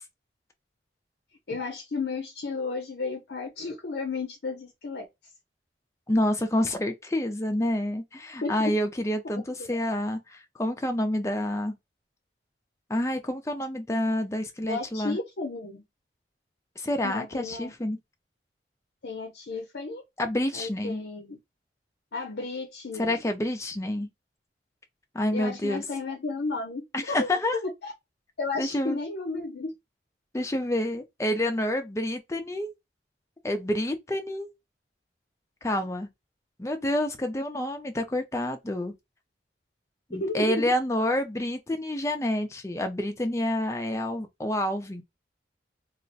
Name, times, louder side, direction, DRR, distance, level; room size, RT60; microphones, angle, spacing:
voice 1, 1.5-5.0 8.4-8.5 9.6-9.7 14.7-15.8 17.0-17.7 19.0-20.0 20.5-21.4 22.1-23.2 25.3-27.3 27.8-27.9 28.4-29.7 40.1-40.7, left 3 dB, 70° left, 0.6 m, -33 dB
voice 2, 6.1-11.7 12.9-15.2 16.8-18.0 20.2-21.0 23.0-24.1 25.1-25.8 26.9-27.6 28.6-29.0 30.3-32.7 33.4-34.5 35.6-36.1 36.6-38.9 40.1-45.0, left 1 dB, 15° left, 0.4 m, -28 dB
2.4 x 2.1 x 3.9 m
head